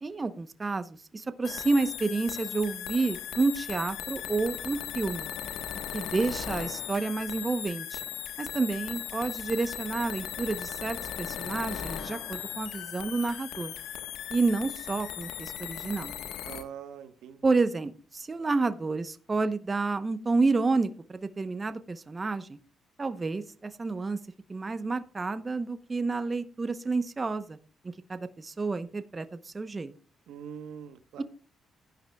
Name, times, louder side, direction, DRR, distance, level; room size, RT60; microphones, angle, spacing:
voice 1, 0.0-5.3 5.9-8.0 8.4-13.7 14.3-16.1 17.4-22.6 23.0-24.2 24.5-27.6 27.8-29.9 31.2-31.3, right 3 dB, 25° right, 11 dB, 0.9 m, -30 dB
sound 1, 1.4-16.6, left 10 dB, 90° left, 1.3 m, -37 dB
voice 2, 16.4-17.4 30.3-31.2, right 8 dB, 85° right, 9 dB, 1.2 m, -43 dB
16.5 x 10.5 x 2.3 m, 0.39 s
cardioid pair, 90°, 0 cm